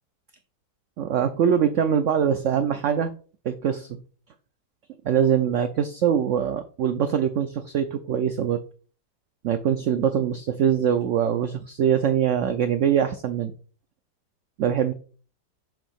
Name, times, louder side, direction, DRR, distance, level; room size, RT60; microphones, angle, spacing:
voice 1, 1.0-3.1 3.4-4.0 5.0-8.6 9.4-13.5 14.6-14.9, right 8 dB, 80° right, 9 dB, 0.6 m, -23 dB
7.1 x 2.7 x 5.7 m, 0.40 s
omnidirectional pair, 1.8 m